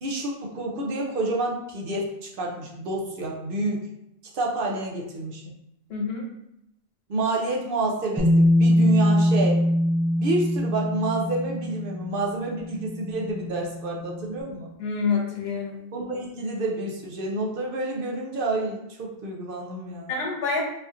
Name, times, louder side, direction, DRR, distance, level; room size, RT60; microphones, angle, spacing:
voice 1, 0.0-3.9 4.3-5.5 7.1-9.6 10.1-14.7 15.9-20.2, right 2 dB, 65° right, -1 dB, 0.8 m, -29 dB
voice 2, 5.9-6.3 14.8-15.8 20.1-20.6, left 5 dB, 80° left, 1 dB, 1.0 m, -27 dB
Bass guitar, 8.2-14.2, left 1 dB, 5° right, 0.5 m, -23 dB
4.1 x 2.7 x 2.4 m, 0.83 s
omnidirectional pair, 1.0 m